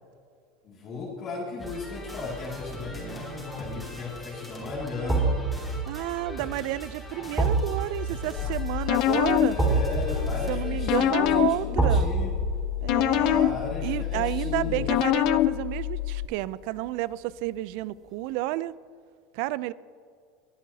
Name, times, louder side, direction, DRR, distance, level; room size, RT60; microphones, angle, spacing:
voice 1, 0.6-5.4 7.2-7.3 9.0-12.3 13.1-14.9, left 3 dB, 40° left, -5 dB, 2.3 m, -36 dB
sound 1, 1.6-11.1, equal, 5° left, 2.9 m, -40 dB
voice 2, 2.9-3.5 5.9-9.6 10.5-12.1 12.8-13.5 13.8-18.7 19.3-19.7, right 16 dB, 65° right, 19 dB, 0.4 m, -31 dB
sound 2, 3.6-3.7 5.1-16.1 16.4-16.6, right 3 dB, 15° right, 2.3 m, -30 dB
sound 3, 8.4-16.3, left 15 dB, 55° left, 0.4 m, -26 dB
21.5 x 9.9 x 2.8 m, 2.2 s
supercardioid pair, 125°, 0 cm